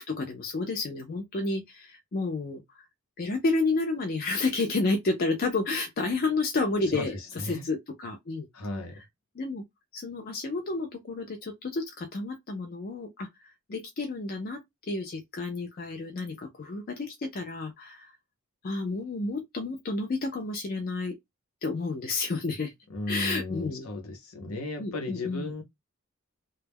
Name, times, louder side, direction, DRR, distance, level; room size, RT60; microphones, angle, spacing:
voice 1, 0.0-2.8 3.2-8.5 9.0-9.1 9.4-9.6 9.9-13.3 13.7-14.6 14.9-18.1 18.6-21.1 21.6-22.7 23.1-23.9 24.8-25.5, left 3 dB, 40° left, 0.4 m, -30 dB
voice 2, 6.9-7.7 8.5-9.0 22.9-25.6, left 2 dB, 70° left, 0.8 m, -35 dB
2.2 x 2.1 x 3.4 m
head